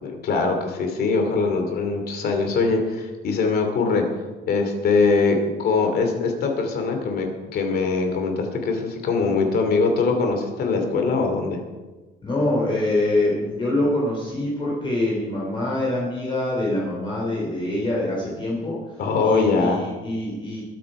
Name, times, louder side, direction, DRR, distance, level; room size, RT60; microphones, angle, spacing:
voice 1, 0.0-4.1 4.5-11.6 19.0-19.9, left 4 dB, 50° left, 4 dB, 2.7 m, -22 dB
voice 2, 12.2-18.8 19.2-20.6, left 1 dB, 25° left, -4 dB, 3.5 m, -25 dB
21.5 x 8.5 x 4.9 m, 1.2 s
cardioid pair, 160°, 20 cm